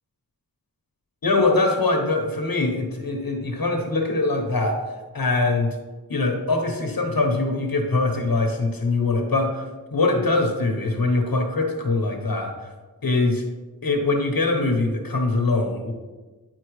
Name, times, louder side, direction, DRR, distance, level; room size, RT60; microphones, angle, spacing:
voice 1, 1.2-4.8 5.1-5.7 6.1-9.6 9.9-12.7 13.0-13.4 13.8-15.9, left 3 dB, 70° left, 2 dB, 1.0 m, -22 dB
10.0 x 4.3 x 3.1 m, 1.2 s
wide cardioid pair, 50°, 36 cm